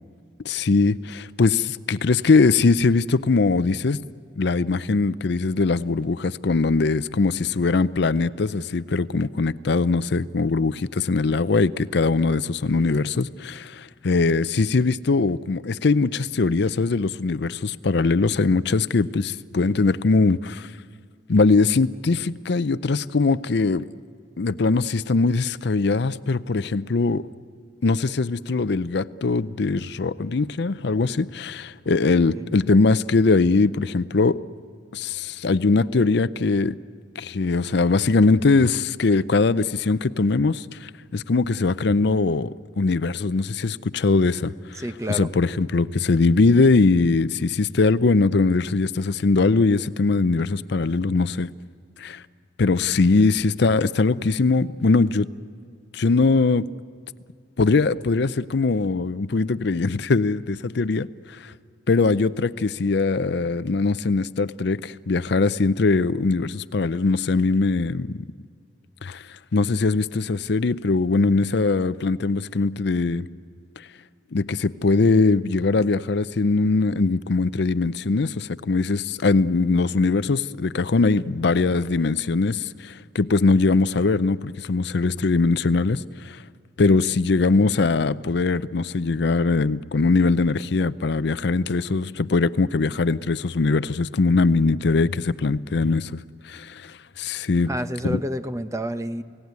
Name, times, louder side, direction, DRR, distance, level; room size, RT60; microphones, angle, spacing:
voice 1, 0.4-4.0 4.4-20.7 21.3-23.9 24.4-27.3 27.8-34.4 34.9-36.8 37.2-44.8 45.1-51.5 52.0-52.2 52.6-55.3 55.9-56.7 57.6-61.5 61.9-68.3 69.0-73.3 73.8-73.9 74.3-86.4 86.8-97.7 98.0-98.2, left 3 dB, 60° left, 0.5 m, -21 dB
voice 2, 44.8-45.3 86.8-87.0 97.7-99.2, equal, 15° right, 0.7 m, -29 dB
29.5 x 17.5 x 9.5 m
head